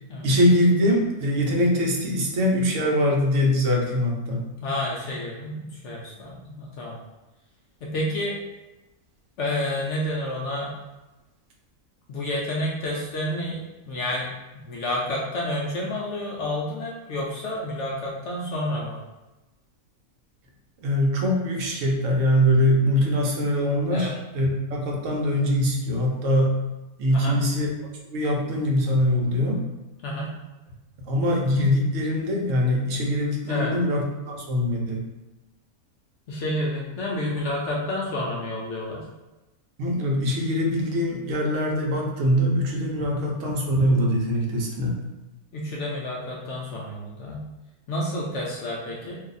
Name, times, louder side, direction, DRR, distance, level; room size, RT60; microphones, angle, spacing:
voice 1, 0.2-4.4 20.8-26.6 27.0-27.7 28.1-29.6 31.0-35.0 39.8-45.0, equal, 65° right, -1 dB, 1.0 m, -23 dB
voice 2, 4.6-7.0 7.8-8.4 9.4-10.7 12.1-13.6 13.9-14.3 14.5-19.0 23.9-24.1 27.1-27.4 30.0-30.4 33.4-33.7 36.3-39.1 43.0-43.2 45.5-47.4 47.9-49.2, left 1 dB, 65° left, -3 dB, 0.8 m, -29 dB
2.7 x 2.3 x 3.9 m, 1.1 s
omnidirectional pair, 1.5 m